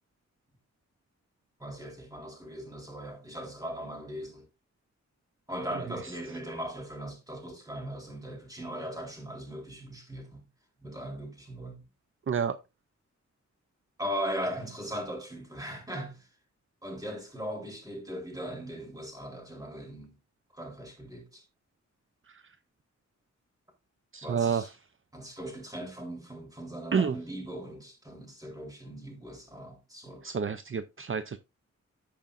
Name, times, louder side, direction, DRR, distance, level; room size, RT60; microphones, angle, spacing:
voice 1, 1.6-4.5 5.5-10.4 10.8-11.8 14.0-16.3 16.8-20.2 20.5-21.4 24.2-24.7 25.1-30.4, equal, 10° right, 3.6 m, -39 dB
voice 2, 12.3-12.6 24.1-24.7 26.9-27.2 30.2-31.4, right 6 dB, 45° right, 0.6 m, -29 dB
14.5 x 5.1 x 2.5 m
wide cardioid pair, 95°, 29 cm